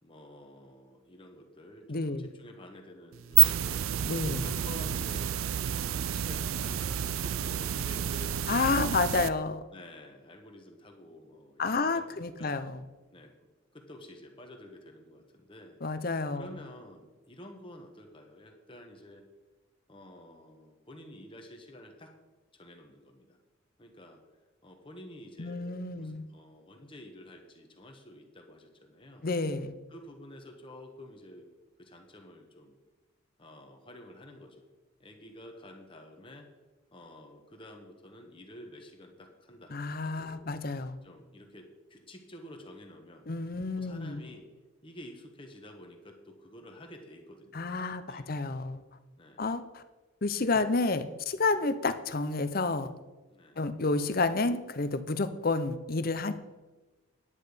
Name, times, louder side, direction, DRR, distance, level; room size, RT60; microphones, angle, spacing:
voice 1, 0.0-3.8 4.2-5.4 5.8-8.9 9.7-12.6 13.1-13.3 13.7-15.8 16.3-19.3 19.9-22.1 22.5-23.4 23.8-24.2 24.6-29.2 29.9-31.5 31.8-32.8 33.4-34.6 35.0-36.5 36.9-39.7 40.0-40.5 41.0-43.3 43.7-44.5 44.8-47.7 48.1-48.3 49.2-49.5 51.5-51.7 53.3-53.6, left 1 dB, 25° left, 3 dB, 1.2 m, -50 dB
voice 2, 1.9-2.3 4.1-4.5 8.5-9.6 11.6-12.8 15.8-16.6 25.4-26.3 29.2-29.7 39.7-41.0 43.3-44.2 47.5-48.8 49.4-49.8 50.2-52.9 53.6-56.3, left 3 dB, 45° left, 11 dB, 0.7 m, -30 dB
sound 1, 3.1-9.3, right 11 dB, 90° right, 0.4 m, -29 dB
10.0 x 8.8 x 5.0 m, 1.2 s
head